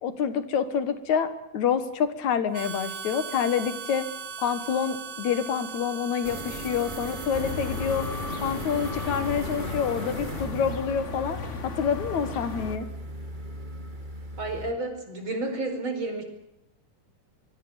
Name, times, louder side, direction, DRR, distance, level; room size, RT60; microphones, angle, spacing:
voice 1, 0.0-4.0 4.4-8.1 8.4-11.4 11.6-12.9, left 7 dB, 70° left, 12 dB, 2.9 m, -27 dB
Harmonica, 2.5-9.8, right 6 dB, 75° right, 3.0 m, -40 dB
sound 1, 6.2-14.7, right 1 dB, 15° right, 2.2 m, -38 dB
sound 2, 7.3-12.8, left 5 dB, 35° left, 1.2 m, -35 dB
voice 2, 14.4-16.2, right 2 dB, 40° right, 6 dB, 5.4 m, -31 dB
25.0 x 23.0 x 7.2 m, 0.83 s
omnidirectional pair, 3.5 m